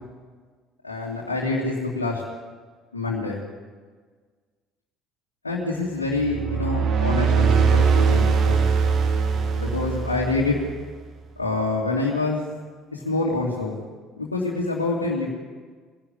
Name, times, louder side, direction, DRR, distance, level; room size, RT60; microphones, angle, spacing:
voice 1, 0.8-2.2 2.9-3.4 5.4-8.6 9.6-10.6 11.4-12.5 12.9-13.8 14.2-15.3, left 3 dB, 85° left, -4 dB, 2.6 m, -26 dB
sound 1, 6.2-10.8, right 5 dB, 50° right, 2.5 m, -21 dB
23.0 x 16.5 x 8.4 m, 1.5 s
figure-of-eight pair, 55°, 0 cm